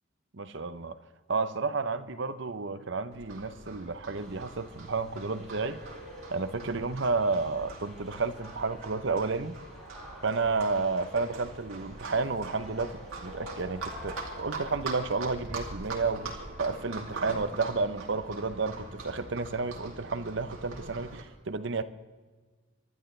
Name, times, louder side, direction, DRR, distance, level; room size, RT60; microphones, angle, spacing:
voice 1, 0.3-1.0 1.3-5.8 6.3-9.6 10.2-21.8, right 4 dB, 60° right, 12 dB, 0.8 m, -31 dB
Livestock farm animals working animals, 3.1-21.2, right 3 dB, 80° right, 2.6 m, -43 dB
sound 1, 4.1-14.4, equal, ahead, 4.7 m, -49 dB
26.0 x 12.0 x 3.3 m, 1.4 s
head